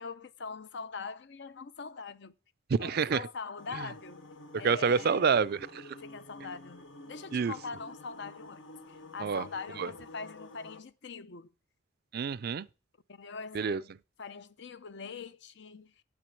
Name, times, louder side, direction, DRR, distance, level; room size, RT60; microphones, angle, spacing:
voice 1, 0.0-2.3 2.8-4.2 4.6-5.2 6.0-11.5 13.1-13.9 14.2-15.9, left 5 dB, 65° left, 0.7 m, -43 dB
voice 2, 2.8-3.2 3.8-3.9 4.5-5.8 7.3-7.5 9.2-9.5 9.8-9.9 12.1-12.7 13.5-13.8, right 6 dB, 55° right, 0.4 m, -28 dB
sound 1, 3.6-10.8, left 1 dB, 90° left, 1.5 m, -50 dB
8.6 x 6.1 x 8.3 m
head